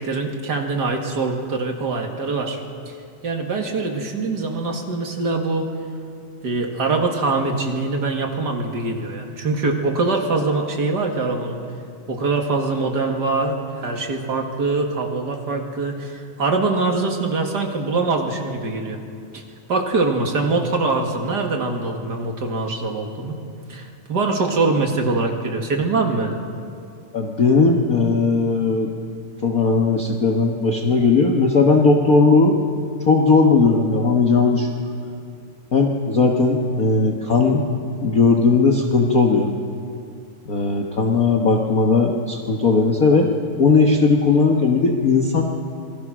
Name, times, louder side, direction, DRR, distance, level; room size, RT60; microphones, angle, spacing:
voice 1, 0.0-2.6 2.9-3.0 3.2-5.7 6.4-11.6 12.1-19.0 19.3-19.4 19.7-23.4 23.7-26.4, right 3 dB, 35° right, 2 dB, 2.0 m, -23 dB
voice 2, 27.1-28.9 29.4-32.6 33.1-34.7 35.7-37.7 38.0-39.5 40.5-43.3 43.6-45.4, left 4 dB, 55° left, 1 dB, 1.0 m, -17 dB
27.5 x 21.5 x 6.2 m, 2.4 s
omnidirectional pair, 3.7 m